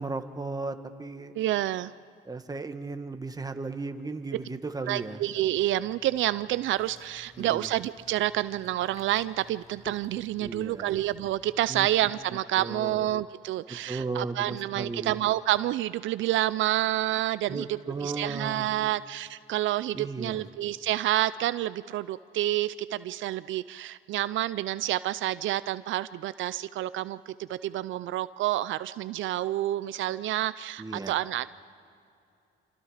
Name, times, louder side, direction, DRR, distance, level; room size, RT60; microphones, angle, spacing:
voice 1, 0.0-1.3 2.2-5.2 7.4-7.7 10.4-10.9 11.7-11.9 12.6-13.0 13.7-15.2 17.5-18.7 19.9-20.4 30.8-31.2, right 3 dB, 20° right, 8 dB, 1.4 m, -35 dB
voice 2, 1.4-1.9 4.9-31.5, right 14 dB, 80° right, 15 dB, 0.5 m, -29 dB
sound 1, 5.5-12.2, left 3 dB, 30° left, 1.8 m, -52 dB
27.0 x 24.5 x 5.0 m, 2.5 s
cardioid pair, 90°, 20 cm